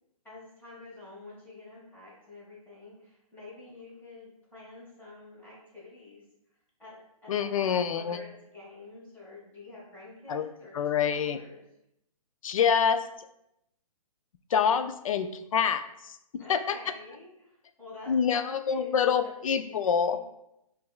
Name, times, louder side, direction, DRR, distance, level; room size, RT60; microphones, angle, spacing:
voice 1, 0.2-6.2 6.8-11.6 16.4-19.3 19.6-20.2, left 2 dB, 10° left, -7 dB, 1.2 m, -48 dB
voice 2, 7.3-8.2 10.3-10.4 10.7-11.4 12.4-13.1 14.5-16.2 16.5-16.8 18.1-20.2, left 7 dB, 65° left, 10 dB, 0.4 m, -26 dB
6.6 x 2.6 x 2.3 m, 0.82 s
hypercardioid pair, 150°, 19 cm